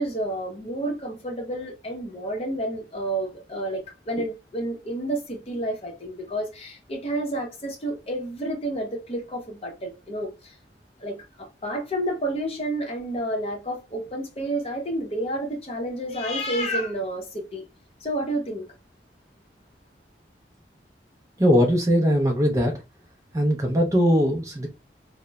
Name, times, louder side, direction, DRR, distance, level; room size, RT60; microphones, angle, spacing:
voice 1, 0.0-10.6 11.0-17.6 18.0-18.7, right 1 dB, 35° left, 0.6 m, -30 dB
voice 2, 21.4-22.7 23.3-24.7, equal, 20° right, 0.4 m, -20 dB
2.8 x 2.0 x 2.2 m
head